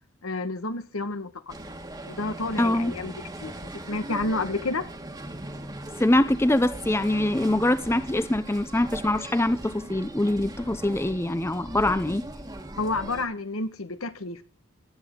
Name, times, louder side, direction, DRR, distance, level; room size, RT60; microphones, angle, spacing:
voice 1, 0.2-1.6 2.0-3.1 3.4-3.5 3.9-4.9 12.8-14.4, left 2 dB, 90° left, 1.4 m, -30 dB
sound 1, 1.5-13.2, right 1 dB, 20° right, 1.4 m, -39 dB
voice 2, 2.6-2.9 6.0-12.2, left 1 dB, 10° left, 0.5 m, -24 dB
19.0 x 8.3 x 3.8 m
head